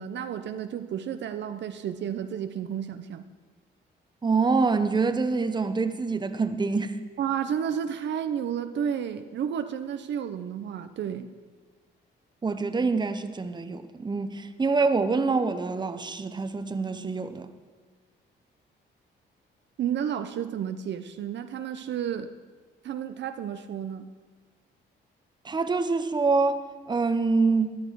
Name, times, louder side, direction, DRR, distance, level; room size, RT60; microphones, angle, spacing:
voice 1, 0.0-3.2 7.2-11.3 19.8-22.3 22.8-24.1, right 8 dB, 65° right, 0.7 m, -31 dB
voice 2, 4.2-7.0 12.4-17.5 25.4-27.8, right 4 dB, 20° right, 0.9 m, -26 dB
14.0 x 10.5 x 4.7 m
cardioid pair, 90°, 20 cm